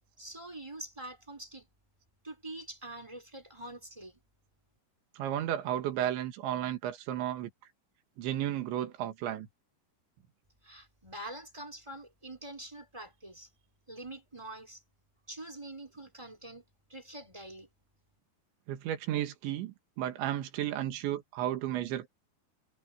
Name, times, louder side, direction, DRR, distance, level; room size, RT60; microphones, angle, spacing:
voice 1, 0.2-1.7 2.2-4.2 10.6-13.5 13.9-14.8 15.3-16.6 16.9-17.7, right 1 dB, 5° right, 5.0 m, -45 dB
voice 2, 5.2-7.5 8.2-9.5 18.7-22.1, right 12 dB, 90° right, 4.1 m, -33 dB
omnidirectional pair, 5.1 m